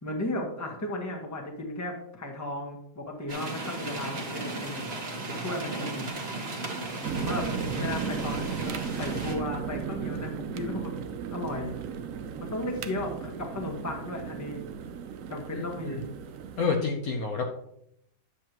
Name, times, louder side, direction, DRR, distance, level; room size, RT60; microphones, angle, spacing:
voice 1, 0.0-4.8 5.3-6.1 7.1-7.5 7.8-10.9 11.3-11.8 12.4-14.6 15.3-16.1, left 1 dB, 10° left, 1 dB, 1.1 m, -35 dB
sound 1, 3.3-9.3, right 2 dB, 35° right, 1.4 m, -36 dB
sound 2, 7.0-16.7, right 7 dB, 70° right, 0.7 m, -35 dB
voice 2, 15.5-16.0 16.6-17.4, left 4 dB, 60° left, 2 dB, 1.1 m, -29 dB
9.8 x 7.4 x 2.9 m, 0.76 s
omnidirectional pair, 2.0 m